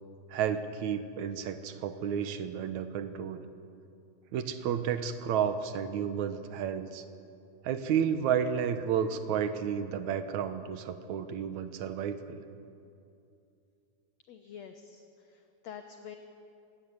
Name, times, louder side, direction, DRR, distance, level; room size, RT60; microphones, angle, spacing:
voice 1, 0.3-3.5 4.3-7.0 7.6-12.4, right 8 dB, 65° right, 9 dB, 2.3 m, -31 dB
voice 2, 14.3-16.2, left 8 dB, 65° left, 7 dB, 1.9 m, -47 dB
26.5 x 17.5 x 9.6 m, 2.6 s
omnidirectional pair, 4.0 m